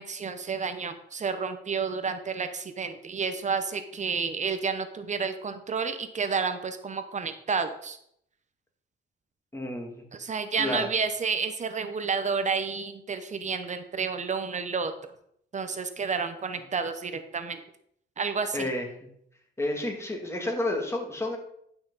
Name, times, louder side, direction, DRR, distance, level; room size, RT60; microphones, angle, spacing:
voice 1, 0.0-8.0 10.2-14.9 15.5-17.6 18.2-18.7, right 5 dB, 35° right, 9 dB, 0.9 m, -30 dB
voice 2, 9.5-10.0 10.6-10.9 18.5-18.9 19.6-21.4, left 1 dB, 15° left, 2 dB, 2.3 m, -30 dB
11.0 x 5.9 x 4.1 m, 0.71 s
cardioid pair, 90°, 20 cm